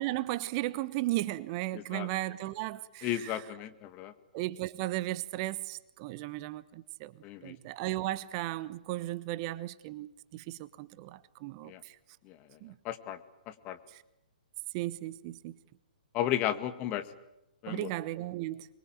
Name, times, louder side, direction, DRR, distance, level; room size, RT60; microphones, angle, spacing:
voice 1, 0.0-3.4 4.3-12.0 12.6-12.8 13.9-14.0 14.7-15.5 17.7-18.7, right 17 dB, 35° right, 1.1 m, -36 dB
voice 2, 1.7-2.1 3.0-4.1 7.2-7.5 11.7-11.8 12.3-12.4 12.8-13.2 13.5-13.8 16.1-17.0 17.6-17.9, left 12 dB, 30° left, 1.9 m, -34 dB
24.5 x 22.5 x 9.2 m
figure-of-eight pair, 120°, 5 cm